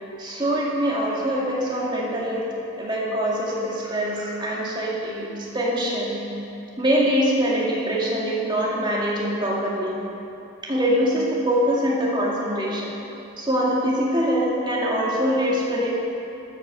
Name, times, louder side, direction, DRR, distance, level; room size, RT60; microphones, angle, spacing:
voice 1, 0.2-2.5 2.8-6.3 6.8-10.0 10.7-12.9 13.4-15.9, equal, 20° right, -4 dB, 2.2 m, -23 dB
13.5 x 8.7 x 6.8 m, 2.9 s
head